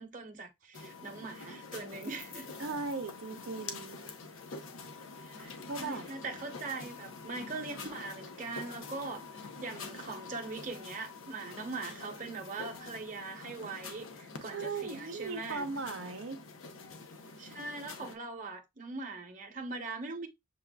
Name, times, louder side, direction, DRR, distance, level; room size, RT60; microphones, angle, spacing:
voice 1, 0.0-2.6 5.2-15.7 17.4-20.3, right 3 dB, 40° right, 0.8 m, -41 dB
sound 1, 0.7-18.2, left 4 dB, 85° left, 0.7 m, -46 dB
voice 2, 2.6-4.0 5.7-6.1 14.4-16.4, right 4 dB, 80° right, 0.6 m, -38 dB
6.8 x 2.4 x 2.2 m
head